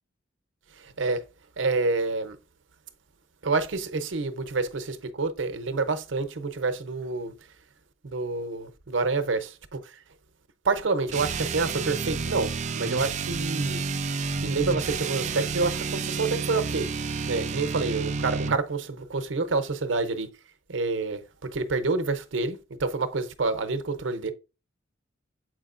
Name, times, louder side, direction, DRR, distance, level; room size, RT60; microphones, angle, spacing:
voice 1, 0.7-1.2 1.6-2.4 3.4-7.3 8.0-10.0 10.6-13.8 14.4-20.3 20.7-24.3, right 3 dB, 70° right, 0.8 m, -28 dB
sound 1, 11.1-18.6, right 4 dB, 35° right, 0.4 m, -30 dB
7.6 x 5.0 x 2.5 m
head